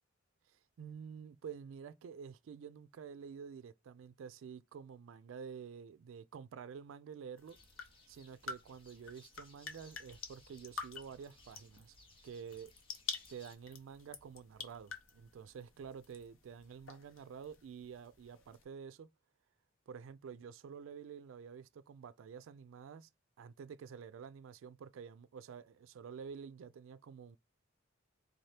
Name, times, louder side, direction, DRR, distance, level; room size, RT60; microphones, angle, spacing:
voice 1, 0.5-7.6 8.1-12.0 12.2-12.7 13.3-19.1 19.9-23.1 23.4-27.4, right 6 dB, 70° right, 0.3 m, -49 dB
sound 1, 7.4-18.6, left 5 dB, 80° left, 0.9 m, -49 dB
sound 2, 7.5-13.6, left 3 dB, 25° left, 0.8 m, -64 dB
3.8 x 2.8 x 3.2 m
head